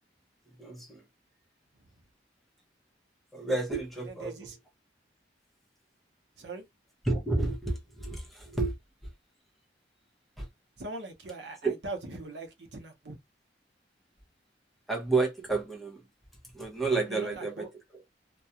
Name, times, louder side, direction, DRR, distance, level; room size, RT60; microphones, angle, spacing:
voice 1, 0.6-1.0 3.3-4.6 7.0-8.7 10.4-10.5 11.6-11.7 14.9-16.0 16.5-17.7 17.9-18.0, right 3 dB, ahead, 0.7 m, -30 dB
voice 2, 4.1-4.6 6.4-6.6 10.8-13.2 17.1-17.7, right 2 dB, 75° right, 0.7 m, -41 dB
2.3 x 2.2 x 2.7 m
head